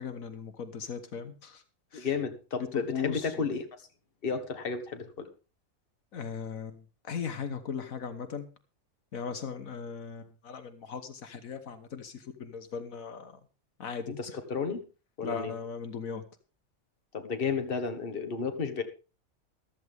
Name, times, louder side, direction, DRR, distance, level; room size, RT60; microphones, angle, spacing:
voice 1, 0.0-1.6 1.9-2.1 2.6-3.5 6.1-8.5 9.1-13.4 13.8-14.2 15.2-16.2, left 6 dB, 75° left, 10 dB, 1.6 m, -38 dB
voice 2, 1.9-3.6 4.2-5.3 14.2-14.8 15.2-15.5 17.1-18.8, left 5 dB, 40° left, 7 dB, 1.6 m, -32 dB
14.5 x 13.5 x 3.5 m, 0.32 s
omnidirectional pair, 1.5 m